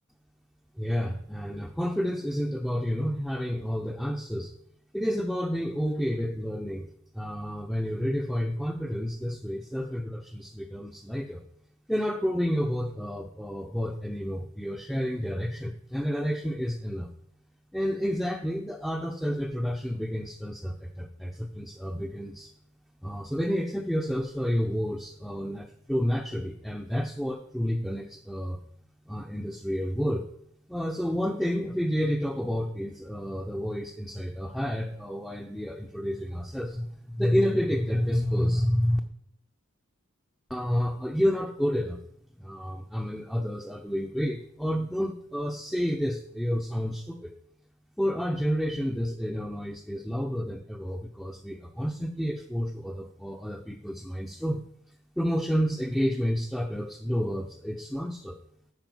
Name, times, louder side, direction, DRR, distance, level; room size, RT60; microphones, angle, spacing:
voice 1, 0.8-4.5 4.9-6.9 7.1-11.4 11.9-17.1 17.7-22.5 23.0-28.6 29.1-30.3 30.7-39.0 40.5-42.0 42.4-47.4 48.0-54.6 55.2-58.4, equal, ahead, 2 dB, 0.5 m, -30 dB
9.0 x 5.3 x 6.0 m, 0.69 s
head